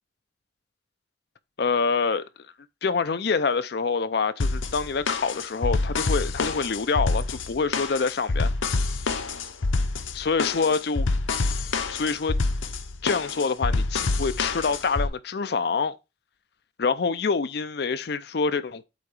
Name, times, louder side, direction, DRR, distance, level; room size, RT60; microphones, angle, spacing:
voice 1, 1.6-2.2 2.8-8.5 10.1-11.1 11.9-12.3 13.0-16.0 16.8-18.8, left 5 dB, 55° left, 0.5 m, -26 dB
sound 1, 4.4-15.1, left 3 dB, 90° left, 0.7 m, -27 dB
8.1 x 2.9 x 4.8 m
head